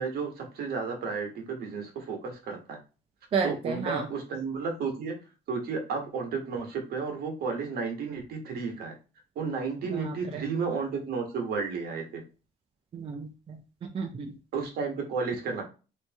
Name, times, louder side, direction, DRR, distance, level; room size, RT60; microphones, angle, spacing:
voice 1, 0.0-2.8 3.4-5.1 5.5-8.9 9.3-12.2 14.5-15.6, right 5 dB, 65° right, 2 dB, 1.2 m, -32 dB
voice 2, 3.3-4.1 9.8-10.4 12.9-14.3, right 5 dB, 35° right, 3 dB, 0.5 m, -33 dB
2.9 x 2.6 x 3.4 m, 0.33 s
cardioid pair, 110°, 17 cm